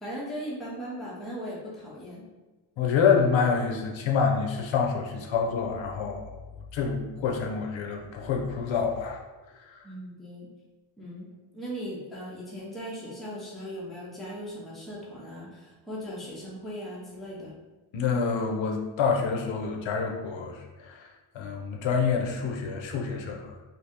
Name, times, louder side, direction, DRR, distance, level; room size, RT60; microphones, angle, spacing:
voice 1, 0.0-2.3 9.8-10.5 11.0-17.5, equal, ahead, -6 dB, 0.5 m, -38 dB
voice 2, 2.8-6.4 6.7-9.2 9.7-9.8 17.9-23.5, left 5 dB, 70° left, 1 dB, 0.6 m, -27 dB
2.8 x 2.7 x 3.4 m, 1.2 s
wide cardioid pair, 175°, 48 cm